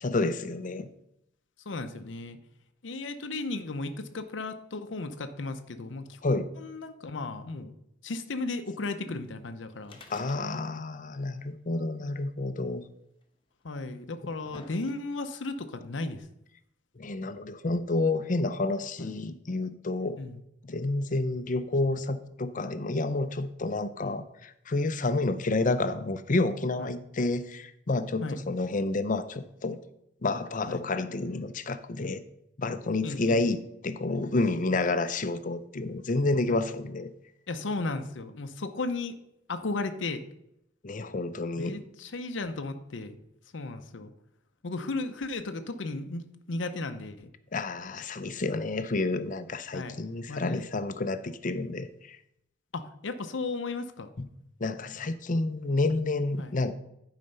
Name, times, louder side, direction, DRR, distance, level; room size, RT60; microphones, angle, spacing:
voice 1, 0.0-0.9 6.2-6.5 10.1-12.8 17.0-20.2 20.6-29.8 30.2-32.2 32.6-37.1 40.8-41.7 47.5-52.2 54.2-54.3 54.6-56.7, left 2 dB, 45° left, 0.6 m, -29 dB
voice 2, 1.7-2.4 2.8-7.8 8.0-10.0 13.6-16.3 19.0-19.1 20.2-20.4 24.0-24.2 26.8-27.0 28.2-28.4 30.7-30.8 33.0-33.4 36.5-36.6 37.5-39.2 39.5-40.2 41.6-43.2 43.5-44.1 44.6-47.3 49.7-50.0 50.3-50.7 52.7-54.1 56.4-56.6, left 3 dB, 80° left, 0.7 m, -35 dB
sound 1, 9.8-10.9 11.1-11.2 12.2-12.3 13.2-13.3 14.0-15.3 16.2-16.3, left 2 dB, 30° left, 1.2 m, -51 dB
11.0 x 4.9 x 5.5 m
head